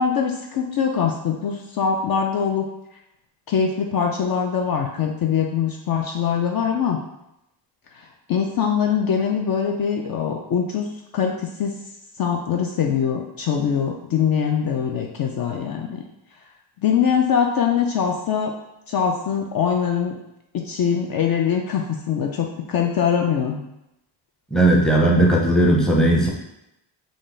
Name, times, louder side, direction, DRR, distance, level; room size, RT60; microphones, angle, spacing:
voice 1, 0.0-2.7 3.5-7.0 7.9-10.9 11.1-11.7 12.2-16.0 16.8-18.5 18.9-20.2 20.5-23.6, left 7 dB, 50° left, 2 dB, 0.5 m, -23 dB
voice 2, 24.5-26.3, right 1 dB, ahead, -3 dB, 0.7 m, -17 dB
3.6 x 2.4 x 3.8 m, 0.86 s
cardioid pair, 95°, 47 cm